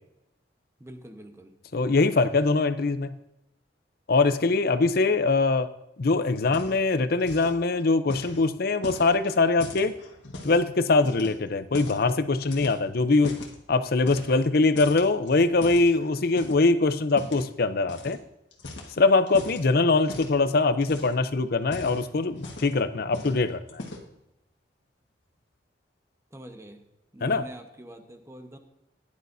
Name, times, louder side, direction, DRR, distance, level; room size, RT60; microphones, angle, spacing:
voice 1, 0.8-1.5 26.3-26.8 27.1-28.6, right 1 dB, 15° right, 6 dB, 1.1 m, -44 dB
voice 2, 1.7-3.2 4.1-5.7 6.0-9.9 10.4-13.4 13.7-18.2 19.0-23.8 27.2-27.4, left 3 dB, 55° left, 12 dB, 0.6 m, -23 dB
sound 1, 6.4-6.9 7.2-7.6 8.1-10.6 11.0-12.1 12.4-13.6 14.0-14.5 14.8-16.7 17.2-17.5 17.9-18.2 18.5-19.6 20.1-20.4 20.8-21.2 21.6-22.8 23.1-23.4 23.7-24.2, left 2 dB, 90° left, 1.6 m, -40 dB
15.5 x 10.5 x 2.7 m, 0.88 s
head